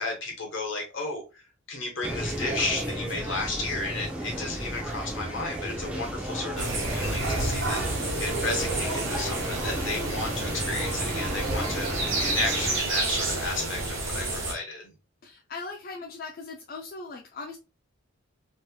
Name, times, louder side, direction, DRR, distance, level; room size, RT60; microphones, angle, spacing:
voice 1, 0.0-1.4 1.7-7.8 8.2-14.9, left 3 dB, 70° left, 1 dB, 1.2 m, -33 dB
sound 1, 2.0-12.8, right 1 dB, 5° right, 0.5 m, -34 dB
sound 2, 6.6-14.5, right 2 dB, 70° right, 1.1 m, -29 dB
voice 2, 15.2-17.6, left 3 dB, 45° left, 0 dB, 0.4 m, -39 dB
3.0 x 3.0 x 2.2 m, 0.29 s
head